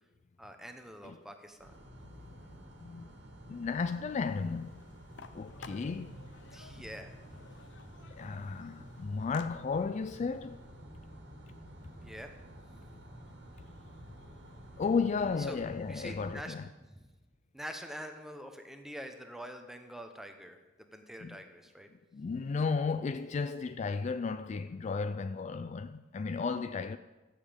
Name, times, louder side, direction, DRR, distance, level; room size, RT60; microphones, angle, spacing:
voice 1, 0.4-1.8 6.5-7.1 12.0-12.3 15.4-15.6 15.9-16.5 16.9-17.1 17.5-21.9, equal, ahead, 1.0 m, -45 dB
sound 1, 1.6-16.4, equal, 65° right, 1.8 m, -51 dB
voice 2, 3.5-4.8 5.3-6.2 8.1-10.6 14.8-16.6 21.2-21.4 22.1-27.0, left 5 dB, 35° left, 0.3 m, -34 dB
sound 2, 4.1-9.5, left 5 dB, 65° left, 0.7 m, -54 dB
15.0 x 7.3 x 5.2 m
head